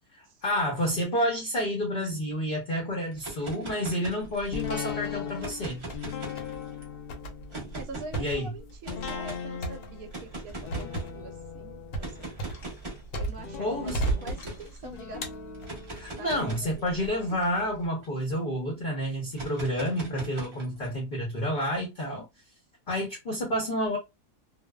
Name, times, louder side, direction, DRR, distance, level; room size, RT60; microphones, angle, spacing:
voice 1, 0.4-5.8 8.2-8.5 13.6-14.1 15.9-22.3 22.9-24.0, equal, 45° left, 0.7 m, -29 dB
sound 1, 3.1-4.7 5.3-6.8 7.5-8.3 8.8-9.4 10.1-11.2 12.0-13.1 13.8-14.7 15.5-18.4 19.3-20.9, right 2 dB, 30° right, 0.6 m, -41 dB
sound 2, 4.2-5.1 5.4-6.1 6.4-6.6 7.1-13.6 13.9-14.8 15.2-16.1 16.7-17.1, right 2 dB, 70° left, 1.1 m, -35 dB
sound 3, 4.5-17.5 17.8-17.9, left 6 dB, 90° left, 0.5 m, -40 dB
voice 2, 7.7-12.6 13.2-15.3 16.2-17.1, right 3 dB, 70° right, 1.0 m, -45 dB
2.8 x 2.0 x 2.2 m
omnidirectional pair, 1.7 m